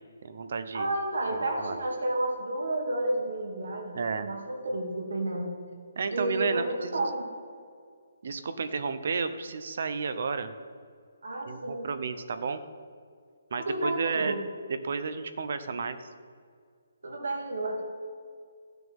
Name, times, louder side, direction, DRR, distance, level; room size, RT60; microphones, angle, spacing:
voice 1, 0.2-0.9 1.3-1.8 3.9-4.3 6.0-7.1 8.2-10.5 11.5-12.6 13.5-14.3 14.8-16.0, right 5 dB, 45° right, 10 dB, 0.8 m, -32 dB
voice 2, 0.7-5.5 6.1-7.3 11.2-11.9 13.6-14.4 17.0-17.8, right 1 dB, 80° right, 1 dB, 2.7 m, -31 dB
14.5 x 9.3 x 5.5 m, 2.1 s
hypercardioid pair, 180°, 0 cm